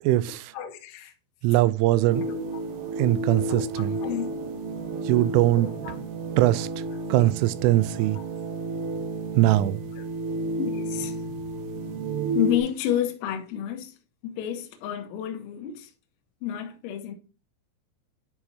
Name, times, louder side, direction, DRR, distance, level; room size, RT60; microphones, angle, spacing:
voice 1, 0.0-0.5 1.4-2.3 3.0-4.0 5.0-5.7 6.4-6.7 7.1-8.2 9.4-9.8, right 16 dB, 90° right, 3.1 m, -21 dB
voice 2, 0.5-1.1 2.3-2.4 3.5-4.3 5.6-6.0 7.2-7.3 8.1-8.3 10.6-11.2 12.3-13.9 14.2-15.9 16.4-17.2, left 10 dB, 80° left, 3.3 m, -30 dB
sound 1, 2.1-12.6, right 2 dB, 70° right, 3.0 m, -31 dB
11.0 x 4.9 x 2.8 m
omnidirectional pair, 5.5 m